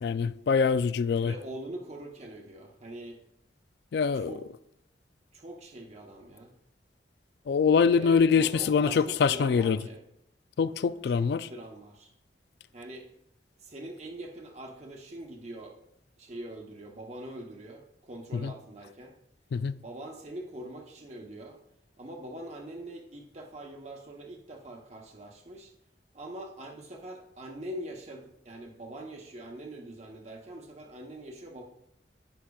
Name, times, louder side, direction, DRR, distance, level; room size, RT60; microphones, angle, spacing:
voice 1, 0.0-1.3 3.9-4.3 7.5-9.8 10.6-11.5 18.4-18.5 19.5-19.7, left 6 dB, 65° left, 0.3 m, -24 dB
voice 2, 1.2-3.2 4.1-4.4 5.3-6.5 7.9-10.0 11.1-12.1 12.7-13.1 13.6-15.8 16.2-19.1 19.8-21.6 22.0-25.7 26.1-31.6, right 1 dB, 40° right, 0.9 m, -43 dB
14.5 x 5.8 x 2.3 m
head